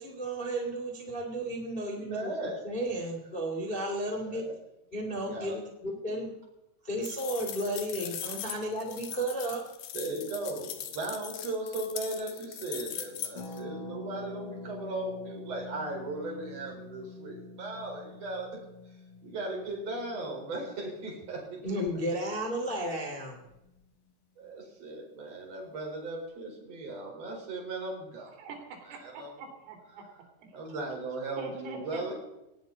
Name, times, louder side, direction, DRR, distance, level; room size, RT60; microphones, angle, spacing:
voice 1, 0.0-2.3 2.6-4.4 4.9-6.4 6.8-9.6 21.6-23.4, right 1 dB, 25° left, 2 dB, 1.3 m, -33 dB
voice 2, 1.9-2.6 4.3-4.5 5.0-5.5 6.1-6.2 8.2-8.4 9.9-18.5 19.2-22.0 24.4-28.5 28.9-29.3 30.5-32.1, right 2 dB, 35° right, 0 dB, 5.2 m, -37 dB
sound 1, 7.0-13.6, left 10 dB, 65° left, 2.7 m, -40 dB
Harp, 13.3-23.0 23.2-23.3 23.5-23.8, left 2 dB, 50° left, 4.3 m, -46 dB
voice 3, 28.4-30.0 30.4-30.5 31.4-32.0, right 5 dB, 90° right, 3 dB, 6.0 m, -44 dB
18.5 x 18.0 x 4.1 m, 0.91 s
omnidirectional pair, 5.8 m